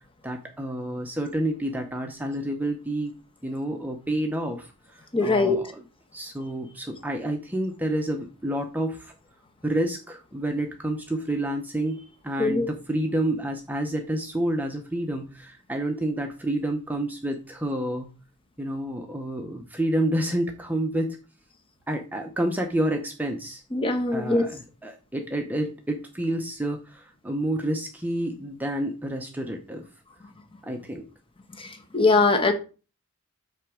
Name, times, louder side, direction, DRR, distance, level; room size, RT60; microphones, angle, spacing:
voice 1, 0.2-3.1 3.4-5.8 6.1-9.1 9.6-18.1 18.6-21.2 21.9-23.6 24.1-29.8 30.6-31.1, right 1 dB, 10° right, 3 dB, 0.8 m, -29 dB
voice 2, 5.1-5.6 12.4-12.7 23.7-24.4 31.6-31.7 31.9-32.5, left 3 dB, 25° left, 5 dB, 1.2 m, -21 dB
8.1 x 3.4 x 6.2 m, 0.34 s
head